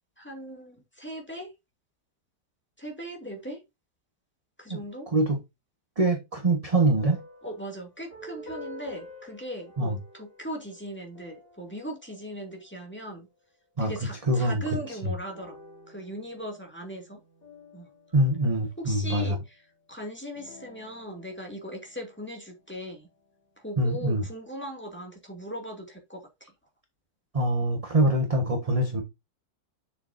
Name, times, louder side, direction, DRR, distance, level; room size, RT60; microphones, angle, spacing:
voice 1, 0.2-1.5 2.8-3.6 4.6-5.1 7.4-13.3 13.8-15.6 15.9-17.2 17.7-17.9 18.8-19.4 19.9-23.1 23.6-26.5, right 1 dB, 5° left, 2.1 m, -39 dB
voice 2, 6.0-7.2 9.8-10.0 13.8-13.9 14.3-14.6 15.0-15.1 18.1-19.4 23.8-24.2 27.3-29.0, right 1 dB, 25° right, 1.0 m, -24 dB
sound 1, 7.0-12.9 15.3-19.1 20.3-23.0, left 1 dB, 65° left, 3.9 m, -49 dB
7.4 x 6.7 x 2.6 m
omnidirectional pair, 2.0 m